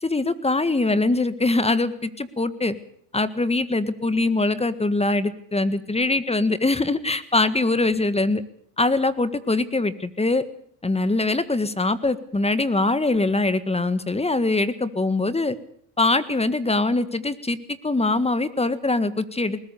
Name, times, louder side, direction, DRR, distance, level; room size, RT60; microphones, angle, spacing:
voice 1, 0.0-2.7 3.1-8.4 8.8-10.4 10.8-15.6 16.0-19.6, left 2 dB, 10° left, 14 dB, 1.7 m, -23 dB
20.5 x 19.5 x 7.0 m, 0.66 s
supercardioid pair, 95°, 49 cm